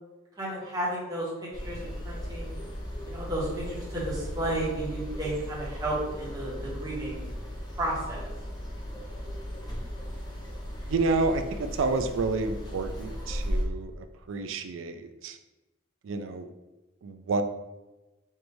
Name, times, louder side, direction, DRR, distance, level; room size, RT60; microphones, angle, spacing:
voice 1, 0.4-2.6 3.0-7.3 7.8-8.3, right 1 dB, 20° right, -7 dB, 1.2 m, -33 dB
sound 1, 1.5-13.6, equal, 20° left, 0.7 m, -36 dB
voice 2, 10.9-15.4 16.0-16.5 17.0-17.4, right 3 dB, 75° right, 8 dB, 0.4 m, -29 dB
4.7 x 2.6 x 3.0 m, 1.1 s
head